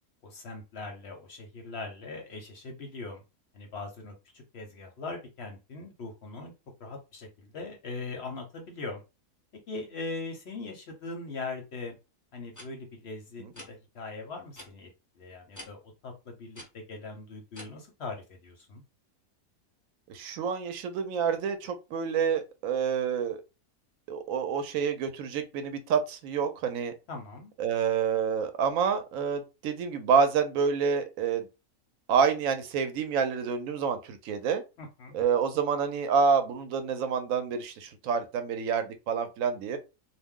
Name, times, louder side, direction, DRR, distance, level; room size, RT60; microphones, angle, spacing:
voice 1, 0.2-3.2 3.5-6.5 6.8-9.0 9.7-12.0 12.3-14.9 15.2-18.8 27.1-27.5 34.8-35.2, left 3 dB, 55° left, 0.7 m, -40 dB
sound 1, 12.5-12.7 13.5-13.7 14.5-14.7 15.5-15.7 16.5-16.7 17.5-17.6, left 1 dB, 20° left, 0.6 m, -45 dB
voice 2, 20.1-23.4 24.1-26.9 27.6-31.5 32.1-34.6 35.1-39.8, right 6 dB, 70° right, 0.9 m, -28 dB
2.5 x 2.0 x 3.5 m
omnidirectional pair, 1.6 m